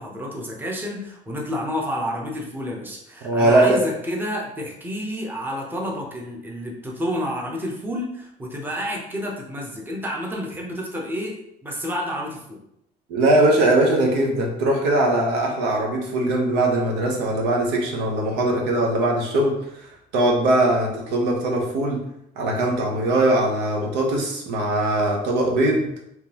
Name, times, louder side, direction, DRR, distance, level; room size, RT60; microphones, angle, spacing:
voice 1, 0.0-11.4 11.6-12.6, equal, 10° right, -1 dB, 0.8 m, -30 dB
voice 2, 3.2-3.8 13.1-22.0 22.4-25.9, right 1 dB, 85° right, -1 dB, 0.9 m, -21 dB
3.6 x 2.8 x 2.9 m, 0.79 s
cardioid pair, 110°, 17 cm